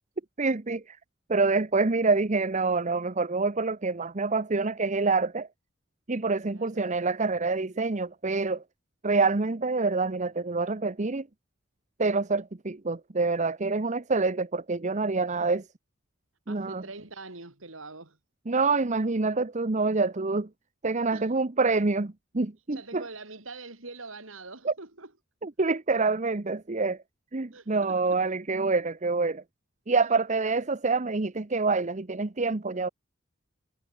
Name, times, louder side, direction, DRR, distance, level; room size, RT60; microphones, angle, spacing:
voice 1, 0.4-1.0 1.3-5.5 6.1-8.6 9.0-11.3 12.0-15.7 16.5-16.8 18.5-20.5 20.8-23.0 24.6-24.7 25.4-27.0 27.3-29.4 29.9-32.9, right 3 dB, 35° right, 0.9 m, -26 dB
voice 2, 6.5-6.9 16.5-18.2 21.1-21.3 22.7-25.1 27.5-28.4 30.4-30.5, right 3 dB, 80° right, 4.0 m, -44 dB
head